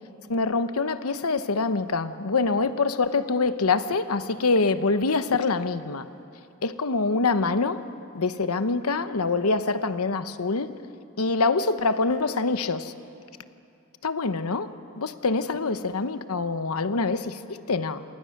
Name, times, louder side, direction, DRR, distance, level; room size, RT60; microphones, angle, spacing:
voice 1, 0.3-6.1 6.6-7.8 8.1-10.7 11.2-12.9 14.0-14.7 15.0-18.0, left 3 dB, 85° left, 11 dB, 1.0 m, -25 dB
28.0 x 19.5 x 6.6 m, 2.6 s
head